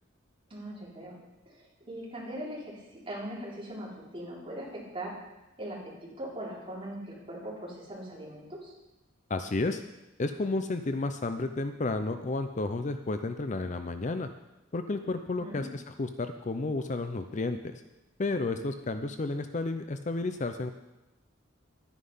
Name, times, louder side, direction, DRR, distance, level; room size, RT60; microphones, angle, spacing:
voice 1, 0.5-1.2 1.5-5.2 5.6-8.7 15.4-15.7, right 1 dB, 30° right, -6 dB, 3.9 m, -40 dB
voice 2, 9.3-9.8 10.2-14.3 14.7-17.8 18.2-20.7, left 2 dB, 40° left, 8 dB, 0.6 m, -32 dB
11.5 x 10.0 x 5.6 m, 0.99 s
head